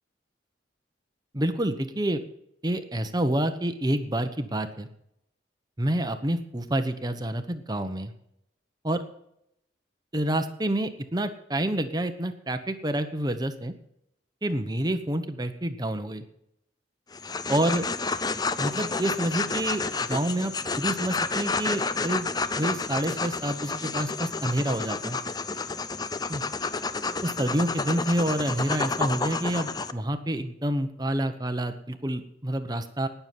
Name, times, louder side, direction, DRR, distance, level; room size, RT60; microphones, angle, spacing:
voice 1, 1.3-2.2 2.6-4.9 5.8-8.1 8.8-9.0 10.1-13.7 14.4-16.2 17.5-17.9 18.6-22.3 22.6-25.2 26.3-26.4 27.2-33.1, right 1 dB, 20° right, 8 dB, 1.0 m, -28 dB
sound 1, 17.1-29.9, left 4 dB, 20° left, 0.5 m, -30 dB
19.0 x 7.0 x 6.0 m, 0.77 s
head